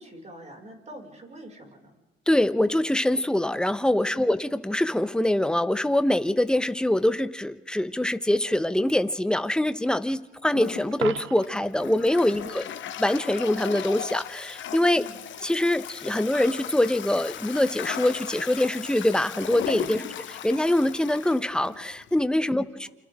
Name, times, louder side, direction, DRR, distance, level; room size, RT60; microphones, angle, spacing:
voice 1, 0.0-2.0 4.1-4.3 12.3-12.7 14.9-15.2 19.9-20.2 22.5-22.9, right 1 dB, 35° right, 1 dB, 6.1 m, -45 dB
voice 2, 2.3-12.6 13.0-15.0 15.4-20.0 20.4-22.9, left 1 dB, 5° left, 11 dB, 1.1 m, -24 dB
Toilet flush, 10.4-22.2, left 10 dB, 70° left, 1.2 m, -37 dB
Coin (dropping), 10.9-11.8 17.8-18.0, right 12 dB, 80° right, 0.8 m, -36 dB
29.0 x 25.5 x 3.8 m, 1.1 s
cardioid pair, 90°, 20 cm